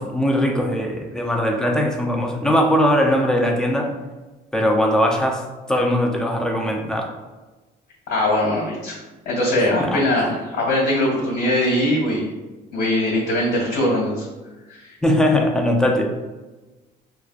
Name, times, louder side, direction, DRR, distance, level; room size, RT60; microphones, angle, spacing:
voice 1, 0.0-3.9 4.5-5.4 5.7-7.1 9.8-10.3 15.0-16.0, equal, 5° left, 1 dB, 0.5 m, -20 dB
voice 2, 8.1-9.0 9.2-12.3 12.7-14.3 14.7-14.9, left 1 dB, 80° left, -5 dB, 1.4 m, -21 dB
4.7 x 2.3 x 2.4 m, 1.2 s
cardioid pair, 110°, 17 cm